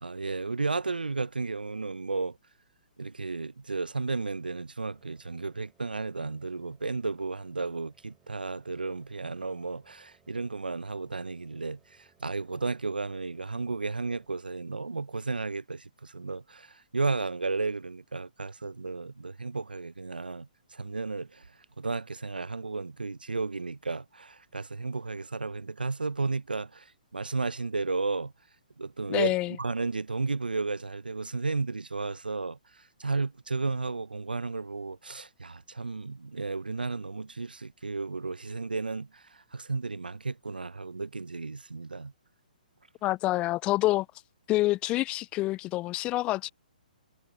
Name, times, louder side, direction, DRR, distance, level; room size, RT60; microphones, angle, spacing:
voice 1, 0.0-2.4 3.0-21.4 21.8-28.3 28.8-42.1, right 3 dB, 85° right, 0.7 m, -33 dB
sound 1, 4.9-14.3, right 8 dB, 15° right, 3.9 m, -68 dB
voice 2, 29.1-29.6 43.0-44.1 44.5-46.5, left 18 dB, 20° left, 0.4 m, -27 dB
figure-of-eight pair, 130°, 5 cm